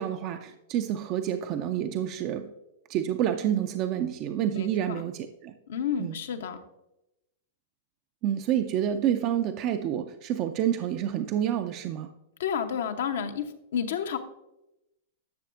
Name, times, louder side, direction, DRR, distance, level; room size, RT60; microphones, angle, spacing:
voice 1, 0.0-2.5 2.9-5.5 6.0-6.2 8.2-12.1, right 10 dB, 40° right, 7 dB, 0.5 m, -28 dB
voice 2, 4.5-5.0 5.7-6.6 12.4-14.2, left 7 dB, 70° left, 8 dB, 0.8 m, -31 dB
11.5 x 6.7 x 2.5 m, 0.89 s
hypercardioid pair, 105°, 0 cm